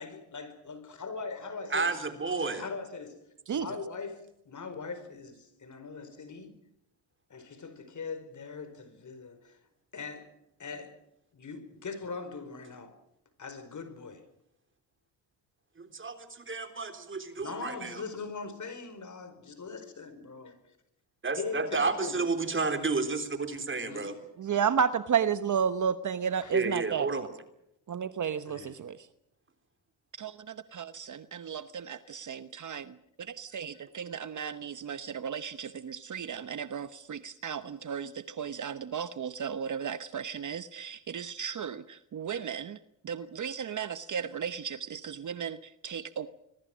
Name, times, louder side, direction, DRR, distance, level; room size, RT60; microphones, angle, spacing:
voice 1, 0.0-2.0 2.4-6.6 7.3-9.6 9.9-10.3 10.6-10.9 11.3-13.0 13.4-14.2 17.4-20.5 21.4-22.2 23.8-24.2 26.4-26.5 28.4-28.8, left 4 dB, 40° left, 5.1 m, -41 dB
voice 2, 1.7-2.6 15.8-18.0 21.2-24.1 26.5-27.3, right 4 dB, 25° right, 3.6 m, -31 dB
voice 3, 24.4-27.3 27.9-29.0 30.2-32.9 33.4-42.8 43.0-46.3, right 7 dB, 45° right, 1.0 m, -33 dB
26.0 x 22.0 x 6.3 m
cardioid pair, 85°, 43 cm